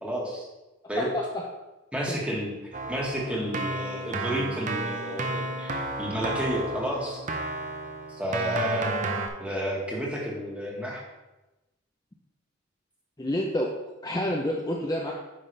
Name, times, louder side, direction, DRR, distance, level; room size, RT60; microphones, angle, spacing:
voice 1, 0.0-0.5 0.9-1.1 1.9-2.6 2.9-7.2 8.1-11.0, equal, 5° right, -3 dB, 1.5 m, -31 dB
voice 2, 1.0-1.4 2.1-2.2 13.2-13.7 14.0-15.1, left 1 dB, 20° left, -1 dB, 0.6 m, -28 dB
Keyboard (musical), 2.7-9.3, right 2 dB, 40° right, 0.6 m, -32 dB
9.3 x 5.7 x 3.3 m, 1.1 s
head